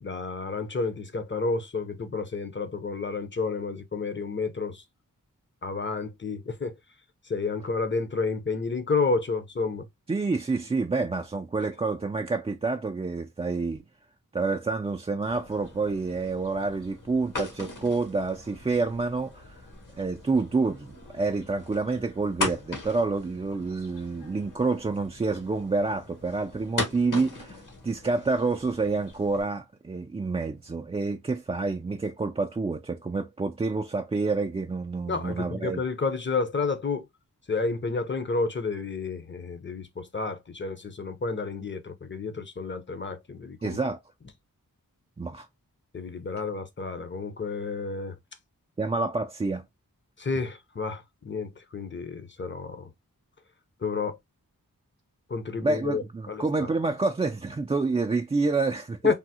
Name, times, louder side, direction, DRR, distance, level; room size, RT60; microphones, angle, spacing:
voice 1, 0.0-4.8 5.6-6.8 7.3-9.9 35.1-37.1 37.5-43.8 45.9-48.1 50.2-52.9 53.8-54.2 55.3-56.7 59.0-59.1, left 4 dB, 35° left, 0.7 m, -30 dB
voice 2, 10.1-13.8 14.3-19.6 20.0-35.8 43.6-44.0 45.2-45.5 48.8-49.6 55.6-59.1, right 3 dB, 20° right, 0.3 m, -28 dB
sound 1, 15.2-29.4, left 3 dB, 60° left, 1.2 m, -39 dB
3.5 x 2.0 x 2.8 m
cardioid pair, 45°, 35 cm